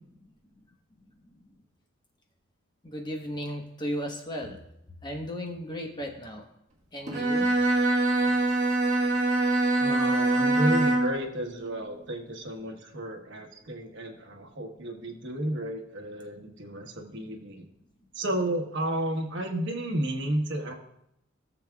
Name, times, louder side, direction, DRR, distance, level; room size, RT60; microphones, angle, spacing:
voice 1, 2.8-4.6 5.0-6.5 6.9-7.5, equal, 20° left, 2 dB, 1.1 m, -35 dB
Bowed string instrument, 7.1-11.2, right 2 dB, 35° right, 1.9 m, -24 dB
voice 2, 9.8-17.6 18.1-20.7, right 1 dB, 60° right, 3 dB, 1.2 m, -32 dB
16.5 x 7.0 x 2.3 m, 0.78 s
head